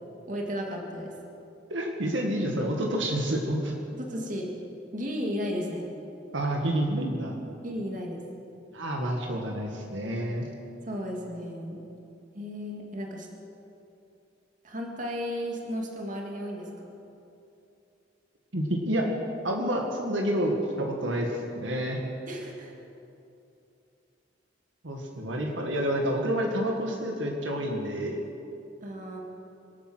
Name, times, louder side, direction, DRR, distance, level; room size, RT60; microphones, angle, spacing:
voice 1, 0.3-1.1 3.9-4.5 4.9-5.9 7.6-8.2 10.8-11.8 12.3-13.3 14.6-16.7 22.2-22.7 28.8-29.2, equal, 45° right, 0 dB, 2.2 m, -34 dB
voice 2, 1.7-3.7 6.3-7.4 8.7-10.5 18.5-19.1 19.4-22.0 24.8-28.2, right 1 dB, 80° right, 1 dB, 1.9 m, -29 dB
25.5 x 8.8 x 6.2 m, 2.7 s
head